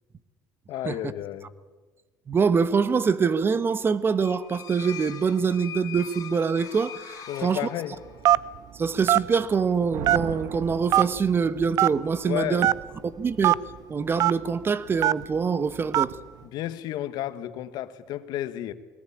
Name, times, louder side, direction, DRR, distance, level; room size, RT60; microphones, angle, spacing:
voice 1, 0.7-1.5 7.3-8.0 12.2-12.7 16.4-18.7, left 13 dB, 70° left, 1.4 m, -32 dB
voice 2, 2.3-7.7 8.7-12.7 13.0-13.5 13.9-16.1, right 5 dB, 30° right, 1.0 m, -24 dB
sound 1, 4.2-8.3, left 9 dB, 50° left, 3.0 m, -42 dB
Telephone, 8.2-8.6 9.1-9.3 10.0-10.4 10.9-11.0 11.8-11.9 12.6-12.7 13.4-13.6 14.2-14.3 15.0-15.2 15.9-16.1, right 14 dB, 55° right, 0.6 m, -19 dB
Thunder, 9.6-11.8, right 8 dB, 85° right, 1.5 m, -38 dB
21.5 x 19.0 x 8.6 m
cardioid pair, 105°, 7 cm